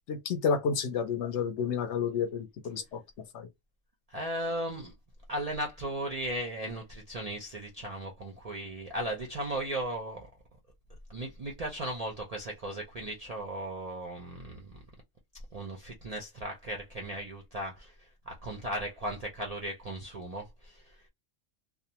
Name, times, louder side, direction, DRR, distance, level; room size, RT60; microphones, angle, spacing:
voice 1, 0.1-3.0 3.3-3.5, left 6 dB, 65° left, 0.8 m, -30 dB
voice 2, 4.1-4.9 5.3-10.3 11.1-14.8 15.5-21.1, right 1 dB, 55° right, 0.4 m, -36 dB
2.4 x 2.1 x 2.8 m
omnidirectional pair, 1.3 m